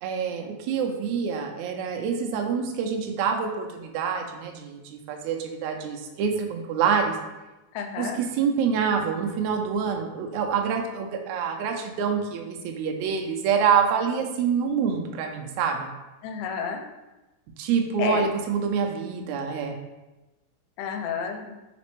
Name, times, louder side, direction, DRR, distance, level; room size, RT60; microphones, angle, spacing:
voice 1, 0.0-7.1 8.0-15.9 17.6-19.8, right 6 dB, 80° right, 2 dB, 1.8 m, -26 dB
voice 2, 7.7-8.2 16.2-16.8 18.0-18.3 20.8-21.6, left 7 dB, 85° left, 4 dB, 2.1 m, -30 dB
4.2 x 4.1 x 3.0 m, 1.0 s
omnidirectional pair, 3.7 m